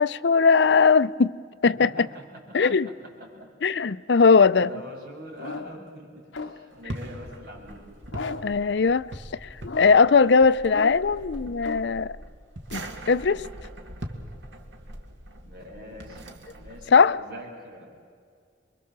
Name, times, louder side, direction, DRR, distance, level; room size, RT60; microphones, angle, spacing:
voice 1, 0.0-1.4 1.6-1.9 2.5-2.9 3.6-4.7 8.4-9.1 9.4-9.5 9.8-12.2 12.7-13.4 16.9-17.2, left 5 dB, 65° left, 0.5 m, -19 dB
voice 2, 1.8-3.5 4.6-7.9 15.4-18.1, equal, 55° right, 6.5 m, -44 dB
sound 1, 5.4-5.9 6.3-6.8 8.1-8.7 9.6-10.2 10.7-11.2 11.6-12.0, left 3 dB, 85° left, 0.9 m, -37 dB
sound 2, 6.7-16.9, right 1 dB, 80° right, 2.2 m, -41 dB
28.0 x 23.0 x 7.4 m
head